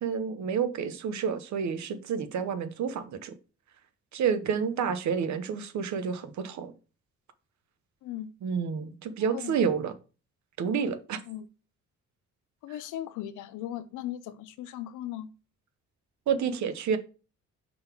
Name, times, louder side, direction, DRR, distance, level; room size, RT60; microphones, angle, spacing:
voice 1, 0.0-3.3 4.1-6.7 8.4-9.9 10.6-11.2 16.3-17.0, right 6 dB, 70° right, 1.0 m, -29 dB
voice 2, 8.0-8.3 9.3-9.6 11.3-11.5 12.6-15.3, left 12 dB, 85° left, 0.6 m, -37 dB
5.2 x 4.0 x 5.9 m
cardioid pair, 90°, 30 cm